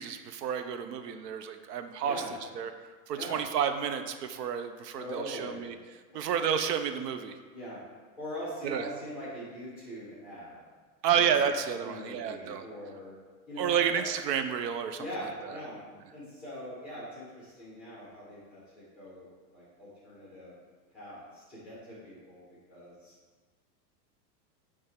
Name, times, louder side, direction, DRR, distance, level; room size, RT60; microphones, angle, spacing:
voice 1, 0.0-2.2 2.5-2.7 3.1-5.8 6.1-7.4 8.6-8.9 11.0-12.6 13.6-15.6, right 8 dB, 75° right, 8 dB, 0.7 m, -30 dB
voice 2, 4.9-5.7 7.5-7.8 8.2-10.6 11.1-13.1 13.5-14.1 15.0-15.8 16.1-20.6 20.9-22.4 22.7-23.1, equal, ahead, -8 dB, 1.6 m, -42 dB
9.5 x 3.4 x 3.6 m, 1.4 s
supercardioid pair, 175°, 50 cm